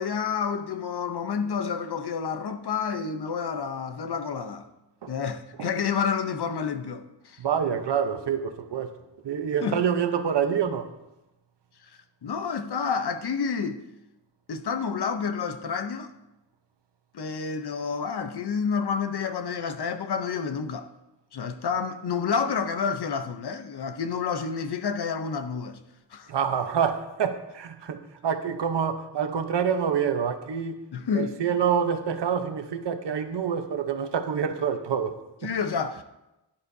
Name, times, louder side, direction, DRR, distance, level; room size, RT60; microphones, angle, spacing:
voice 1, 0.0-4.7 5.1-7.4 9.6-9.8 11.8-11.9 12.2-13.8 14.5-16.1 17.1-20.9 21.3-25.8 26.1-26.3 30.9-31.3 35.4-36.0, left 6 dB, 60° left, 0.8 m, -29 dB
voice 2, 7.4-8.9 9.2-10.9 26.3-30.8 31.1-35.5, right 7 dB, 70° right, 0.9 m, -27 dB
16.0 x 10.5 x 2.7 m
wide cardioid pair, 175°, 44 cm